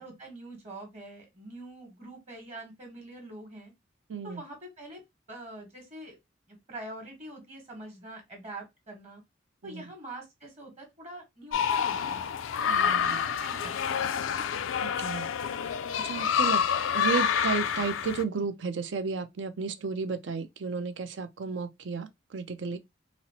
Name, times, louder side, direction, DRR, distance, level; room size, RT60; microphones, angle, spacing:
voice 1, 0.0-3.7 4.2-5.0 5.3-6.2 6.5-9.2 9.6-12.3 12.8-14.1, right 2 dB, 35° right, 1.3 m, -44 dB
voice 2, 4.1-4.4 9.6-9.8 12.7-13.2 14.8-15.3 16.0-16.6 16.9-22.8, right 5 dB, 70° right, 0.5 m, -33 dB
sound 1, 11.5-18.2, left 7 dB, 90° left, 0.4 m, -28 dB
4.1 x 2.0 x 2.7 m
head